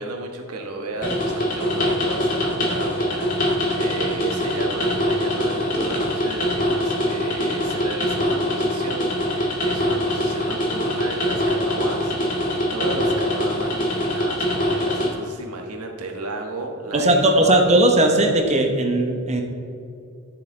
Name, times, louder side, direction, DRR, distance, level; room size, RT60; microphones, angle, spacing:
voice 1, 0.0-17.5, right 2 dB, 85° right, 2 dB, 1.5 m, -33 dB
sound 1, 1.0-15.1, equal, 40° left, 2.0 m, -23 dB
voice 2, 16.9-19.4, right 1 dB, 30° right, 3 dB, 1.1 m, -18 dB
12.0 x 6.7 x 3.9 m, 2.5 s
head